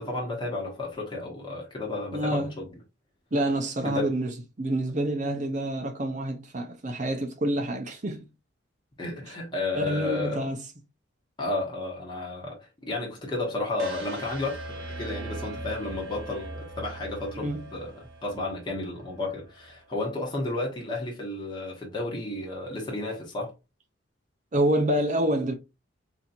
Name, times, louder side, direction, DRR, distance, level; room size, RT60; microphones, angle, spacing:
voice 1, 0.0-2.7 3.8-4.1 9.0-10.5 11.4-23.5, left 2 dB, 20° left, 1.0 m, -32 dB
voice 2, 2.1-2.5 3.3-4.3 4.6-8.3 9.3-9.4 9.7-10.6 17.3-17.7 24.5-25.5, right 1 dB, 40° right, 0.6 m, -27 dB
sound 1, 13.8-19.9, right 2 dB, 85° right, 0.9 m, -40 dB
4.2 x 2.8 x 2.5 m
head